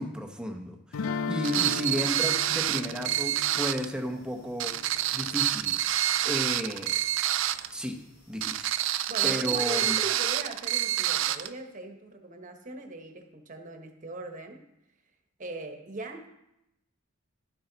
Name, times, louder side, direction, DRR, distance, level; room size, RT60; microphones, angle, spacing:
voice 1, 0.0-4.8 5.1-5.8 6.2-7.0 7.7-8.7 9.2-10.0, equal, 5° right, 3 dB, 0.9 m, -33 dB
sound 1, 0.9-5.9, left 4 dB, 80° left, 0.5 m, -37 dB
sound 2, 1.4-3.9 4.6-7.7 8.4-11.5, right 12 dB, 65° right, 0.4 m, -27 dB
voice 2, 9.1-14.6 15.4-16.3, right 2 dB, 40° right, 5 dB, 1.2 m, -40 dB
11.5 x 8.6 x 4.0 m, 0.86 s
head